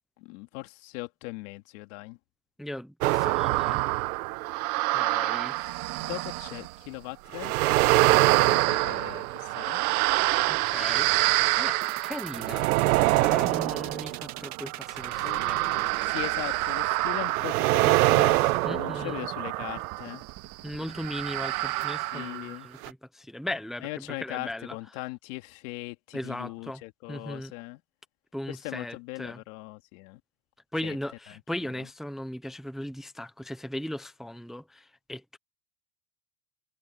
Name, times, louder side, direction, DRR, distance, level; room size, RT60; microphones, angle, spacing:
voice 1, 0.2-2.2 6.0-7.5 8.0-9.8 15.2-20.2 22.1-22.7 23.8-27.8 28.5-30.2 30.8-31.0, left 23 dB, 60° left, 2.3 m, -39 dB
voice 2, 2.6-3.8 4.9-5.6 10.5-12.7 13.2-15.6 18.6-19.3 20.6-24.8 26.1-26.8 27.1-27.5 28.3-29.4 30.7-35.4, left 1 dB, ahead, 0.7 m, -37 dB
sound 1, 3.0-6.7 7.3-20.1 20.9-22.5 22.8-22.9, right 20 dB, 75° right, 1.3 m, -25 dB
sound 2, 11.8-21.8, right 16 dB, 40° right, 1.7 m, -41 dB
supercardioid pair, 160°, 44 cm